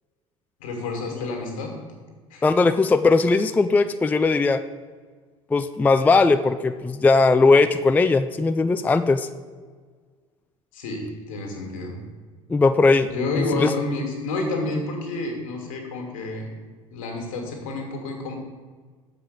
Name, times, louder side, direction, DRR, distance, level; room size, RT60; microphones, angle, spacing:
voice 1, 0.6-1.7 2.3-2.4 10.7-12.0 13.1-16.5 16.9-18.3, left 2 dB, 70° left, 2 dB, 1.8 m, -29 dB
voice 2, 2.4-4.6 5.5-9.3 12.5-13.1 13.6-13.7, left 3 dB, 10° left, 10 dB, 0.3 m, -18 dB
7.0 x 5.1 x 6.5 m, 1.5 s
figure-of-eight pair, 65°, 18 cm